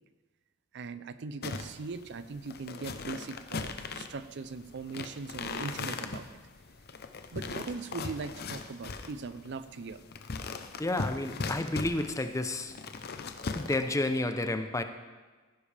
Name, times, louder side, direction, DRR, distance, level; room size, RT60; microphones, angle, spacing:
voice 1, 0.7-6.4 7.3-10.0, right 4 dB, 55° right, 13 dB, 0.5 m, -40 dB
sound 1, 1.4-14.2, left 4 dB, 50° left, 0.7 m, -39 dB
voice 2, 10.8-12.7 13.6-14.8, left 2 dB, 15° left, 8 dB, 0.6 m, -30 dB
15.0 x 10.0 x 3.3 m, 1.3 s
head